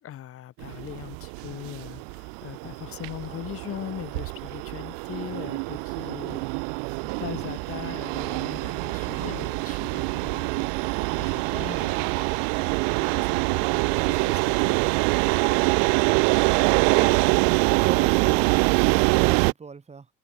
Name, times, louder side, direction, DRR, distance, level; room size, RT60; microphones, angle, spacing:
voice 1, 0.0-6.4 7.2-14.8, left 11 dB, 40° left, 2.6 m, -40 dB
sound 1, 0.6-19.5, right 40 dB or more, 65° right, 0.6 m, -25 dB
sound 2, 11.2-16.8, left 25 dB, 85° left, 6.7 m, -58 dB
voice 2, 16.6-17.2 17.8-18.5 19.1-20.1, right 5 dB, 20° right, 3.7 m, -38 dB
supercardioid pair, 130°, 36 cm